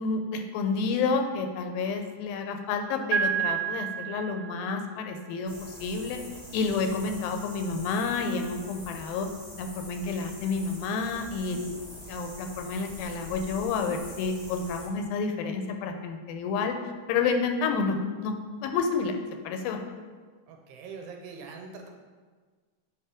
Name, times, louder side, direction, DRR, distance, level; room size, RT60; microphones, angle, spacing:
voice 1, 0.0-5.5 5.8-6.2 6.5-9.3 9.6-11.8 12.1-16.8 17.1-18.0 18.2-18.4 18.6-19.2 19.5-19.8, left 4 dB, 90° left, 5 dB, 2.4 m, -29 dB
Piano, 3.1-5.0, right 8 dB, 65° right, 2.2 m, -30 dB
sound 1, 5.5-14.9, equal, 75° left, 0.5 m, -45 dB
voice 2, 20.5-21.9, right 5 dB, 85° right, 2 dB, 2.5 m, -43 dB
8.2 x 2.9 x 4.8 m, 1.5 s
omnidirectional pair, 4.1 m